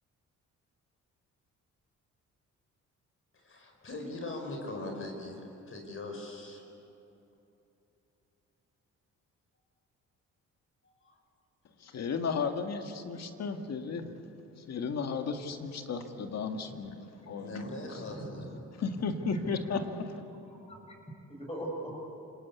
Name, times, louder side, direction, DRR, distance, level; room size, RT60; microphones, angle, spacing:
voice 1, 3.3-6.6 10.8-11.2 17.4-18.5, left 2 dB, 45° left, 3 dB, 5.0 m, -41 dB
voice 2, 11.8-14.2 14.6-18.0 18.7-19.8, left 5 dB, 60° left, 5 dB, 2.0 m, -34 dB
voice 3, 18.0-19.4 19.7-19.8 20.7-20.9 21.3-22.0, right 1 dB, 20° left, 0 dB, 7.3 m, -42 dB
29.0 x 19.5 x 8.4 m, 2.9 s
cardioid pair, 90°, 30 cm